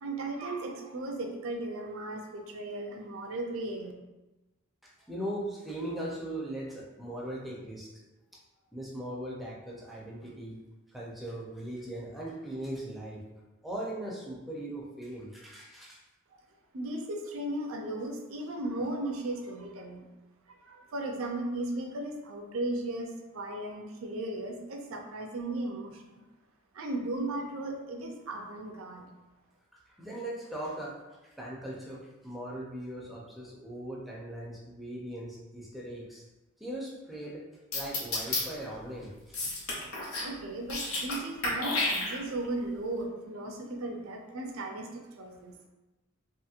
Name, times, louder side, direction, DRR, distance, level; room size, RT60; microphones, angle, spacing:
voice 1, 0.0-3.9 16.3-16.4 16.7-20.1 20.5-26.2 26.7-29.1 40.2-45.6, right 2 dB, 75° right, 2 dB, 0.4 m, -36 dB
voice 2, 4.8-7.9 8.7-10.6 10.9-13.2 13.6-16.0 29.9-31.0 31.2-36.2 36.6-37.4 37.7-39.5, right 1 dB, ahead, -5 dB, 0.4 m, -39 dB
sound 1, 37.7-38.4 39.3-40.3 40.6-41.2 41.4-42.5, left 2 dB, 90° left, 0.8 m, -31 dB
2.9 x 2.8 x 2.4 m, 1.1 s
head